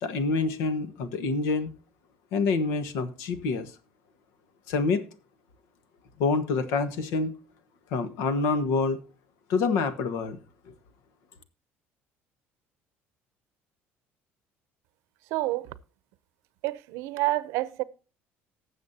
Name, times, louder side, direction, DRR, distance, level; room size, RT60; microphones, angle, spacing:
voice 1, 0.0-1.7 2.3-3.7 4.7-5.0 6.2-7.3 7.9-9.0 9.5-10.4, left 4 dB, 85° left, 1.3 m, -26 dB
voice 2, 15.3-15.7 16.6-17.8, right 18 dB, 80° right, 0.6 m, -28 dB
19.0 x 7.2 x 2.8 m
cardioid pair, 165°, 5 cm